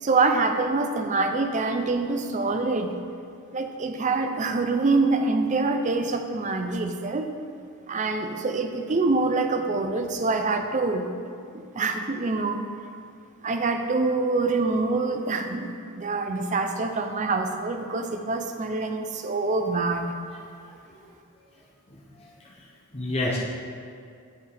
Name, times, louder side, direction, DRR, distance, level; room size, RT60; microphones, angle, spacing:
voice 1, 0.0-2.9 3.5-7.3 7.9-11.1 11.5-12.6 13.4-20.2, right 3 dB, 35° right, 6 dB, 0.5 m, -25 dB
voice 2, 20.3-20.7 21.9-22.7 22.9-23.4, left 2 dB, 30° left, -4 dB, 0.7 m, -32 dB
8.2 x 7.1 x 3.4 m, 2.4 s
head